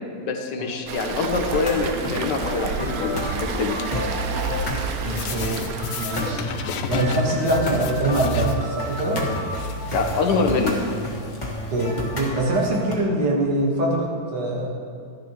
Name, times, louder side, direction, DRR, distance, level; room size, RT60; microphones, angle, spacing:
voice 1, 0.2-3.8 9.9-10.8, left 4 dB, 90° left, 4 dB, 1.6 m, -24 dB
Waves surf, 0.9-6.3, right 5 dB, 65° right, 1.1 m, -31 dB
sound 1, 1.5-12.9, equal, 30° left, 1.5 m, -29 dB
sound 2, 2.4-12.2, left 6 dB, 65° left, 1.0 m, -36 dB
voice 2, 5.3-6.4 6.8-9.2 11.7-14.7, right 1 dB, 85° right, -2 dB, 2.2 m, -24 dB
13.0 x 10.5 x 3.0 m, 2.1 s
omnidirectional pair, 1.8 m